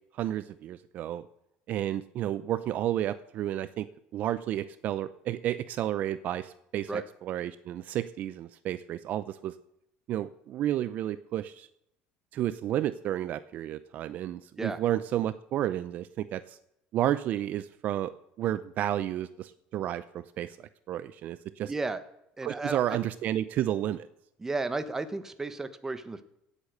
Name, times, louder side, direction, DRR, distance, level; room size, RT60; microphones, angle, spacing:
voice 1, 0.1-1.3 1.7-3.9 4.1-9.5 10.1-11.7 12.3-16.6 16.9-18.1 18.4-21.7 22.4-24.1, right 12 dB, 50° right, 14 dB, 0.6 m, -31 dB
voice 2, 21.7-22.0 22.4-23.0 24.4-26.2, right 3 dB, 15° right, 11 dB, 1.2 m, -33 dB
17.0 x 8.3 x 6.7 m, 0.79 s
cardioid pair, 130°, 3 cm